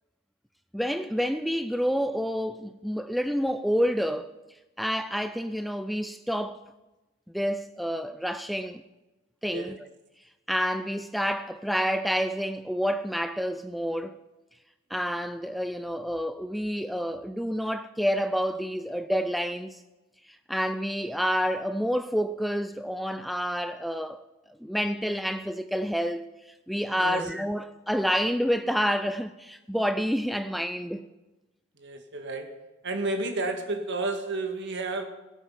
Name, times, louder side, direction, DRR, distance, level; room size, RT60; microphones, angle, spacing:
voice 1, 0.7-4.3 4.8-6.6 7.3-8.8 9.4-9.7 10.5-14.2 14.9-19.8 20.5-24.2 24.6-31.1, equal, ahead, 0.3 m, -28 dB
voice 2, 26.9-27.3 31.8-32.5 32.8-35.0, right 2 dB, 60° right, 1.6 m, -31 dB
18.0 x 8.2 x 5.6 m
head